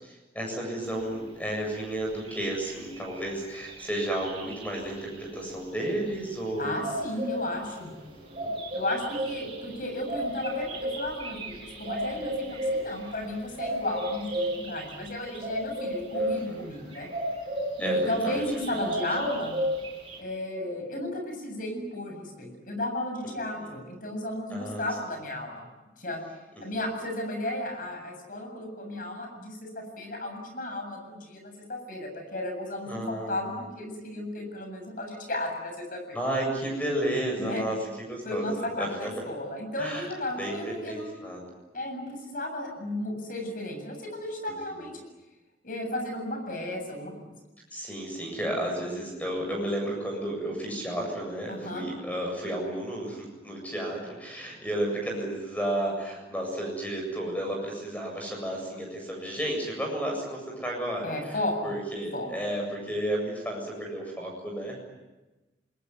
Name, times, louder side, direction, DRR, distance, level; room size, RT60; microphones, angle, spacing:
voice 1, 0.0-6.9 8.0-8.6 16.2-16.7 17.8-18.4 18.7-19.0 23.2-23.7 24.5-24.9 26.6-26.7 32.9-33.4 36.1-39.3 39.8-40.1 40.4-41.5 44.5-44.9 47.7-64.8, right 1 dB, 10° left, 0 dB, 7.7 m, -33 dB
sound 1, 1.8-1.9 2.1-5.2 6.7-20.2, equal, 30° right, 7.3 m, -33 dB
voice 2, 6.6-7.9 8.7-17.1 17.8-19.6 20.2-25.6 26.0-26.2 26.6-36.2 37.4-37.6 38.3-41.2 41.7-45.0 45.6-47.3 51.5-51.9 61.0-61.7 62.1-62.3, left 1 dB, 50° left, 4 dB, 7.5 m, -34 dB
27.5 x 21.0 x 9.7 m, 1.1 s
head